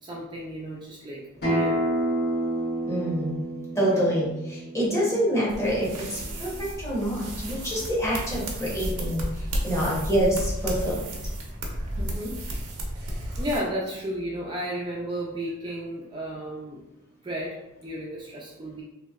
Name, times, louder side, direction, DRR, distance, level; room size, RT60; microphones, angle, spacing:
voice 1, 0.0-1.8 3.8-4.1 12.0-12.4 13.4-16.8 17.2-18.8, equal, 20° right, -4 dB, 0.3 m, -33 dB
Acoustic guitar, 1.4-6.6, right 1 dB, 50° left, 1.3 m, -30 dB
voice 2, 2.9-3.4 3.7-11.1, equal, 15° left, -6 dB, 0.8 m, -26 dB
sound 1, 5.5-13.6, right 1 dB, 85° right, 0.6 m, -32 dB
3.0 x 2.6 x 2.3 m, 0.95 s
head